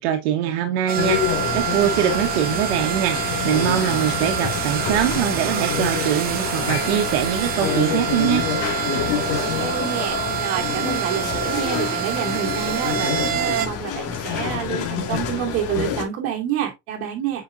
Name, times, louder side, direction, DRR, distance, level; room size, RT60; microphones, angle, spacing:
voice 1, 0.0-3.2 3.4-8.5, right 10 dB, 80° right, 1.1 m, -23 dB
sound 1, 0.9-13.7, right 12 dB, 30° right, 0.6 m, -27 dB
sound 2, 1.0-16.0, left 8 dB, 45° left, 1.8 m, -27 dB
voice 2, 9.4-17.4, right 9 dB, 45° right, 2.6 m, -28 dB
7.8 x 5.1 x 2.5 m
cardioid pair, 155°, 32 cm